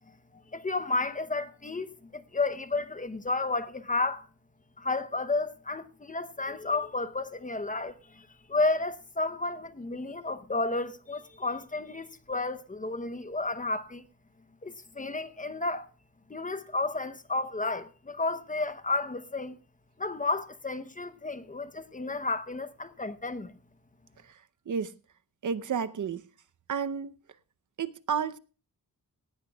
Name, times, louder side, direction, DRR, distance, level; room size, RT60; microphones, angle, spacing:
voice 1, 0.5-4.3 4.8-14.0 14.6-15.9 16.3-19.6 20.0-23.5, left 3 dB, 25° left, 0.8 m, -32 dB
voice 2, 25.4-26.2 26.7-27.1 27.8-28.4, right 6 dB, 60° right, 0.8 m, -31 dB
18.0 x 16.5 x 2.3 m
wide cardioid pair, 155°, 34 cm